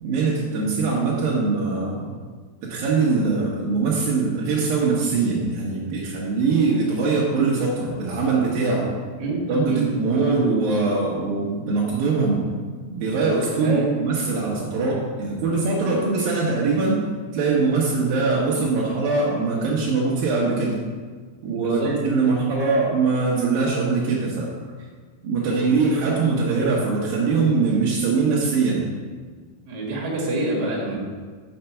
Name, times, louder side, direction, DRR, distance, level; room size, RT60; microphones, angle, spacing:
voice 1, 0.0-2.1 2.6-8.9 9.3-12.5 12.9-17.0 17.3-20.8 21.4-24.5 25.2-28.9, right 4 dB, 80° right, -5 dB, 2.0 m, -22 dB
voice 2, 9.7-10.3 13.6-13.9 15.9-16.0 21.5-21.9 25.5-25.6 29.7-30.9, right 2 dB, 55° right, -3 dB, 2.1 m, -27 dB
6.7 x 6.6 x 5.8 m, 1.5 s
omnidirectional pair, 5.8 m